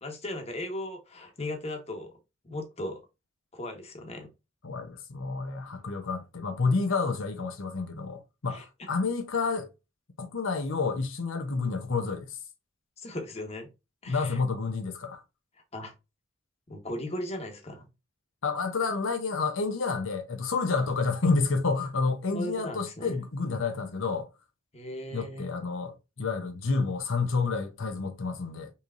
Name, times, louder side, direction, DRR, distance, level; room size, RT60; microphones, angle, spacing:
voice 1, 0.0-2.1 2.4-3.0 3.5-4.3 8.5-8.6 13.0-13.7 14.0-14.4 15.7-15.9 16.7-17.9 22.3-23.2 24.7-25.5, left 1 dB, 30° left, 1.2 m, -37 dB
voice 2, 4.6-9.7 10.2-12.4 14.1-15.2 18.4-24.3 25.1-28.7, left 4 dB, 80° left, 0.8 m, -29 dB
5.6 x 3.2 x 2.5 m
head